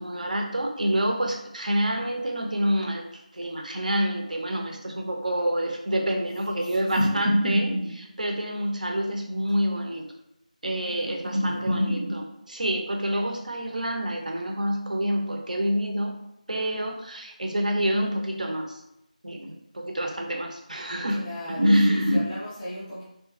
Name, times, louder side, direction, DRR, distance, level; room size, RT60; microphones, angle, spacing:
voice 1, 0.0-10.0 10.6-16.1 16.5-18.8 19.2-21.2 21.5-22.2, equal, 65° right, 2 dB, 0.5 m, -26 dB
voice 2, 6.5-7.3 10.8-11.8 21.1-23.0, equal, 10° left, -10 dB, 0.5 m, -38 dB
2.7 x 2.4 x 2.3 m, 0.82 s
figure-of-eight pair, 170°, 4 cm